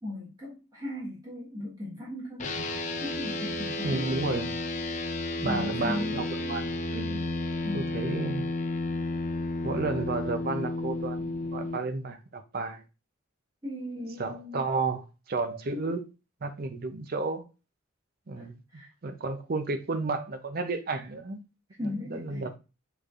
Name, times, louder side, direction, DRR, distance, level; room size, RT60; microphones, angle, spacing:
voice 1, 0.0-2.5 3.0-4.0 5.4-6.5 7.6-7.9 13.6-14.6 15.8-15.9 18.4-18.5 18.7-18.9 21.8-22.5, left 1 dB, 20° right, 1.3 m, -37 dB
sound 1, 2.4-11.8, left 2 dB, 35° left, 0.4 m, -32 dB
voice 2, 3.8-4.5 5.4-7.2 7.7-8.4 9.6-12.8 14.2-16.0 16.4-17.4 18.3-21.4 21.8-22.5, right 3 dB, 45° right, 0.5 m, -32 dB
6.5 x 3.3 x 2.4 m
head